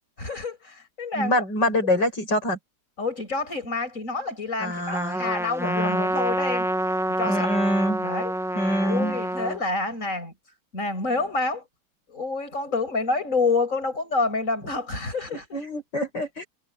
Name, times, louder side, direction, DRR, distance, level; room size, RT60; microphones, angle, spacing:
voice 1, 0.2-1.8 3.0-6.7 7.2-7.5 8.0-8.3 8.8-10.3 10.7-11.6 12.1-15.6, left 3 dB, 45° left, 7.9 m, -28 dB
voice 2, 1.1-2.6 4.6-5.3 5.6-6.1 7.2-8.1 8.6-9.2 15.3-16.5, left 1 dB, 90° left, 8.7 m, -25 dB
Trumpet, 4.9-9.6, right 1 dB, ahead, 1.5 m, -27 dB
omnidirectional pair, 1.8 m